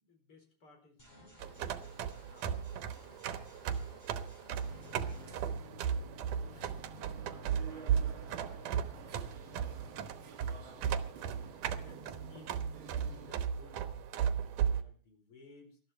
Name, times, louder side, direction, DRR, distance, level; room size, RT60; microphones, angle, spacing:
voice 1, 0.0-12.6 13.0-15.8, left 3 dB, 45° left, 4 dB, 5.1 m, -61 dB
sound 1, 1.0-5.4, equal, 15° left, 4.5 m, -58 dB
sound 2, 1.4-14.8, right 8 dB, 85° right, 2.7 m, -36 dB
sound 3, 4.6-13.3, right 3 dB, 45° right, 2.4 m, -51 dB
20.5 x 12.5 x 4.3 m, 0.42 s
omnidirectional pair, 3.5 m